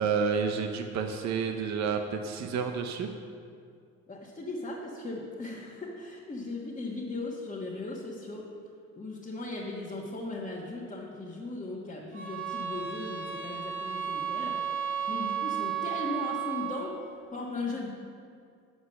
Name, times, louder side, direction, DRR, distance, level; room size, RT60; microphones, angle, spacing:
voice 1, 0.0-3.1, right 6 dB, 65° right, 6 dB, 0.8 m, -30 dB
voice 2, 4.1-8.5 9.0-17.0 17.3-17.9, left 2 dB, 25° left, -5 dB, 1.4 m, -38 dB
sound 1, 12.1-16.9, right 8 dB, 40° right, 1.6 m, -33 dB
8.0 x 7.8 x 6.5 m, 2.3 s
cardioid pair, 90°, 30 cm